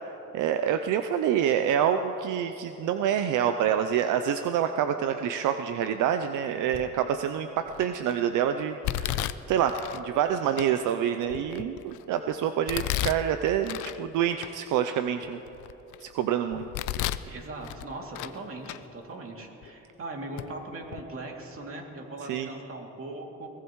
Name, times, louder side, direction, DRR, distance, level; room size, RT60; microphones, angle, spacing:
voice 1, 0.3-15.4 16.0-16.7 22.3-22.5, right 9 dB, 85° right, 8 dB, 0.6 m, -27 dB
Domestic sounds home sounds, 6.7-7.1 7.7-8.1 8.8-10.0 10.6-10.7 11.3-12.0 12.7-14.0 14.4-14.5 15.1-16.0 16.5-17.3 17.6-18.4 18.6-18.8 19.6-19.7 20.4-20.5 20.8-21.0, left 13 dB, 90° left, 0.5 m, -33 dB
voice 2, 17.3-23.5, right 2 dB, 45° right, 0 dB, 2.7 m, -40 dB
22.0 x 18.5 x 3.1 m, 3.0 s
cardioid pair, 90°, 30 cm